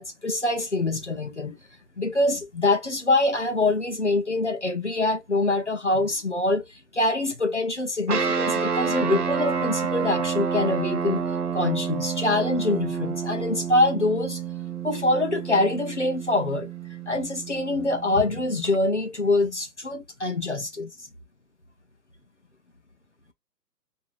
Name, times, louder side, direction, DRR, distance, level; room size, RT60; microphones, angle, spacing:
voice 1, 0.0-1.6 2.0-11.3 11.5-14.4 14.8-16.7 17.1-21.1, left 2 dB, 45° left, 0.5 m, -25 dB
sound 1, 8.1-18.7, right 6 dB, 65° right, 0.8 m, -29 dB
3.1 x 2.7 x 3.1 m
hypercardioid pair, 175°, 50 cm